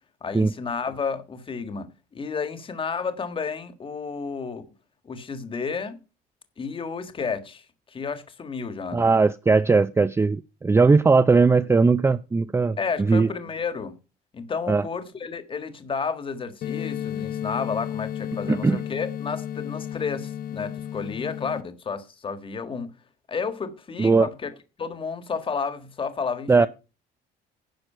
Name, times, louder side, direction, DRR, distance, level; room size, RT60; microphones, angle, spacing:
voice 1, 0.2-4.6 5.0-6.0 6.6-9.1 12.8-14.0 14.3-22.9 23.3-24.5 24.8-26.7, left 5 dB, 30° left, 1.6 m, -31 dB
voice 2, 8.9-12.8 13.1-13.3 14.7-14.8 18.5-18.8 24.0-24.3 26.5-26.7, right 4 dB, 15° right, 0.5 m, -19 dB
sound 1, 16.6-21.6, left 10 dB, 60° left, 1.0 m, -33 dB
10.5 x 6.5 x 5.6 m
cardioid pair, 110°, 17 cm